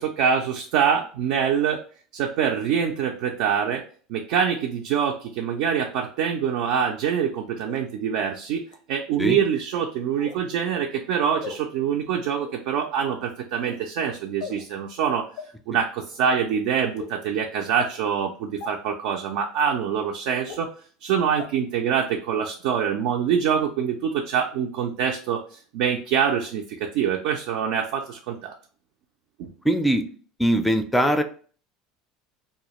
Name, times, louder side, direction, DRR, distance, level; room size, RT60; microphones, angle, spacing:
voice 1, 0.0-1.8 2.1-3.8 4.1-15.3 15.7-20.7 21.0-28.5 29.4-29.5, right 7 dB, 70° right, 2 dB, 0.3 m, -25 dB
sound 1, 7.7-7.8 8.7-8.8 10.2-10.4 11.4-11.6 12.4-12.6 13.5-13.8 14.4-14.6 15.4-15.5 16.1-16.3 17.0-17.1 17.8-17.9 18.6-18.7 19.5-19.6 20.5-20.6 21.4-21.5 22.0-22.1, left 6 dB, 70° left, 0.5 m, -37 dB
voice 2, 29.6-30.1 30.4-31.2, right 1 dB, 5° left, 7 dB, 0.4 m, -21 dB
2.3 x 2.0 x 2.9 m, 0.43 s
supercardioid pair, 95°, 0 cm